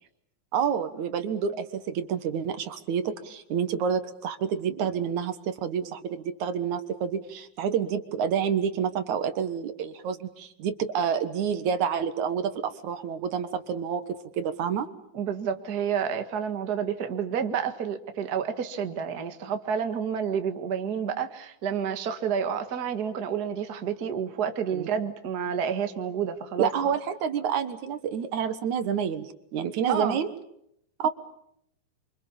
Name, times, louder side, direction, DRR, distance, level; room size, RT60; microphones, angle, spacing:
voice 1, 0.5-14.0 14.4-14.9 24.7-24.9 26.6-30.3 31.0-31.1, right 7 dB, 75° right, 10 dB, 2.8 m, -28 dB
voice 2, 15.1-26.7 29.9-30.2, right 7 dB, 40° right, 7 dB, 1.9 m, -29 dB
29.5 x 25.5 x 7.2 m, 0.75 s
omnidirectional pair, 3.5 m